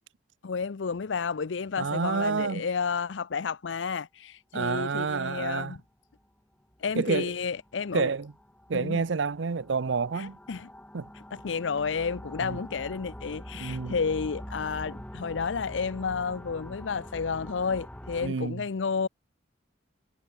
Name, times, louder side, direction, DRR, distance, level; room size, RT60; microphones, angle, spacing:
voice 1, 0.4-5.8 6.8-8.1 8.7-9.0 10.1-10.7 11.3-19.1, left 5 dB, 80° left, 0.6 m, -31 dB
voice 2, 1.8-2.7 4.5-5.8 6.9-7.3 7.9-8.3 8.7-10.4 10.9-11.1 12.4-12.6 13.5-14.0 18.2-18.6, right 5 dB, 80° right, 0.6 m, -29 dB
sound 1, 6.1-6.4 6.7-6.8 7.4-18.3, equal, 5° left, 1.2 m, -44 dB
head